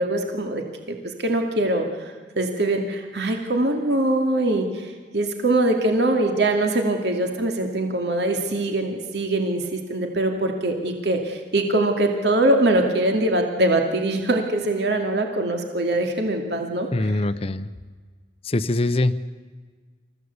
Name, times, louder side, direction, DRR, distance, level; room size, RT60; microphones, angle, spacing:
voice 1, 0.0-1.9 2.4-17.1, right 1 dB, 70° right, 3 dB, 2.4 m, -23 dB
voice 2, 16.9-17.7 18.4-19.1, left 2 dB, 30° left, 11 dB, 0.7 m, -23 dB
27.5 x 15.0 x 8.3 m, 1.5 s
head